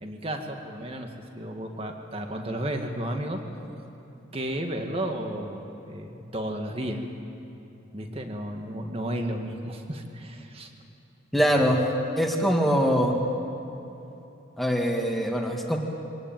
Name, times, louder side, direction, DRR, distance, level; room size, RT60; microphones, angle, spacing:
voice 1, 0.0-3.4 4.3-7.0 7.9-10.7, right 1 dB, 30° right, 3 dB, 2.0 m, -33 dB
voice 2, 11.3-11.9 12.2-13.2 14.6-15.8, equal, ahead, 0 dB, 2.0 m, -23 dB
24.5 x 18.5 x 9.1 m, 3.0 s
head